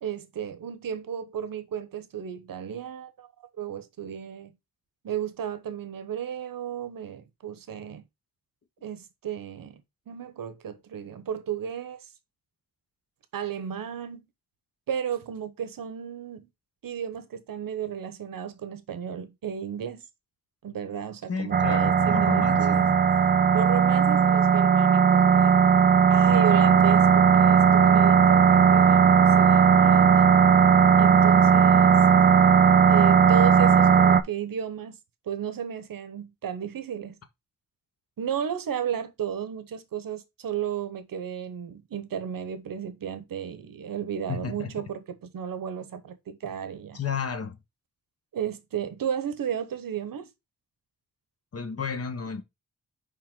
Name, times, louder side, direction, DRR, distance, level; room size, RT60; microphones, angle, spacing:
voice 1, 0.0-3.3 3.6-4.5 5.0-8.0 8.8-12.1 13.3-14.3 14.9-16.5 16.8-20.1 20.6-22.9 23.5-25.6 26.1-30.2 31.0-32.0 32.9-35.0 35.3-37.2 38.2-47.0 48.3-50.3, right 8 dB, 70° right, 1.0 m, -33 dB
voice 2, 21.3-22.9 26.3-26.6 32.2-32.3 44.3-44.9 46.9-47.6 51.5-52.4, left 6 dB, 45° left, 1.0 m, -33 dB
sound 1, 21.5-34.2, right 7 dB, 30° right, 0.4 m, -18 dB
5.2 x 5.0 x 3.7 m
wide cardioid pair, 120°, 35 cm